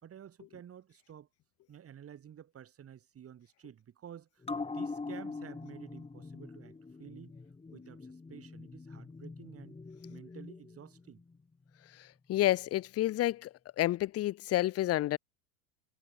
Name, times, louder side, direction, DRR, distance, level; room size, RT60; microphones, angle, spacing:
voice 1, 0.0-1.3 1.7-7.4 7.7-9.8 10.1-11.2, right 9 dB, 30° right, 4.3 m, -51 dB
sound 1, 4.4-11.4 11.7-11.8, left 3 dB, 15° left, 4.1 m, -43 dB
voice 2, 11.9-15.2, left 15 dB, 35° left, 0.9 m, -30 dB
supercardioid pair, 110°, 43 cm